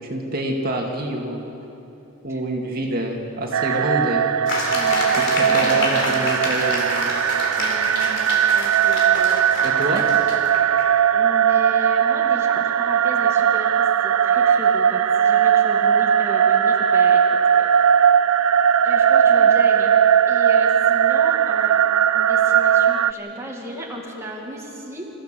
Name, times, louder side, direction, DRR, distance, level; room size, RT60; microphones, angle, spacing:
voice 1, 0.1-1.4 2.2-4.3 5.2-7.1 9.6-10.0, right 1 dB, 45° right, 0 dB, 2.3 m, -26 dB
sound 1, 3.5-23.1, right 8 dB, 90° right, 0.5 m, -18 dB
sound 2, 4.5-10.9, left 2 dB, 60° left, 4.3 m, -28 dB
voice 2, 4.7-6.3 7.6-9.5 9.7-10.0 11.1-17.2 17.5-17.7 18.8-19.9 20.3-21.8 22.1-25.1, equal, 15° right, -2 dB, 2.4 m, -35 dB
28.5 x 15.0 x 7.6 m, 2.9 s
head